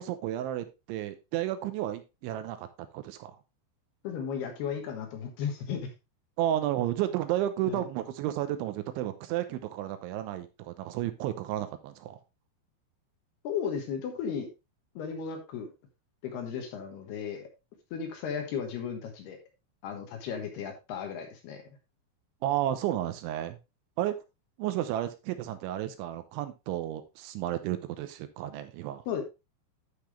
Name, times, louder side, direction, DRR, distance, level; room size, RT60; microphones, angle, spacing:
voice 1, 0.0-2.7 2.9-3.3 6.4-12.2 22.4-23.6 24.0-24.1 24.6-29.0, right 12 dB, 80° right, 10 dB, 3.1 m, -32 dB
voice 2, 4.0-5.9 7.7-7.8 13.4-14.5 14.9-15.7 16.2-17.5 17.9-19.4 19.8-21.6 29.1-29.2, left 7 dB, 65° left, 4 dB, 3.0 m, -35 dB
12.0 x 5.9 x 3.2 m, 0.26 s
omnidirectional pair, 5.6 m